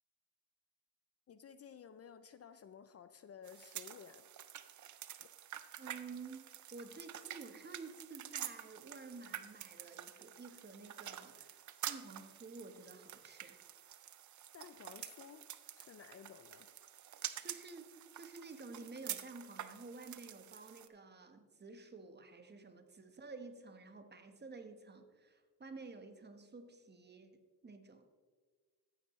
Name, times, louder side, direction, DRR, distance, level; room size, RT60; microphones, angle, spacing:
voice 1, 1.3-4.3 5.2-5.3 14.5-15.5 15.7-16.7, left 7 dB, 40° left, 12 dB, 0.5 m, -55 dB
sound 1, 3.4-20.9, right 11 dB, 55° right, 0.6 m, -48 dB
voice 2, 5.8-11.6 11.9-13.6 17.4-28.1, right 4 dB, 30° right, 7 dB, 1.1 m, -52 dB
14.0 x 8.9 x 3.1 m, 1.5 s
cardioid pair, 95°, 36 cm